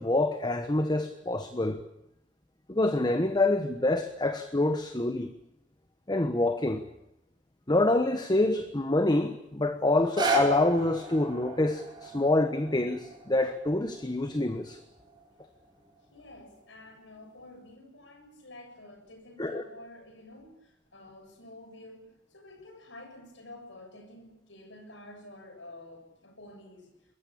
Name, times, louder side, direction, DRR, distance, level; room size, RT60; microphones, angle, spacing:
voice 1, 0.0-1.8 2.7-5.3 6.1-6.8 7.7-14.8 19.4-19.6, left 2 dB, 25° left, 1.2 m, -26 dB
sound 1, 9.9-16.0 16.7-16.8, right 3 dB, 25° right, 5.1 m, -35 dB
voice 2, 16.1-26.9, left 1 dB, 75° left, 7.1 m, -49 dB
23.5 x 21.5 x 8.8 m
head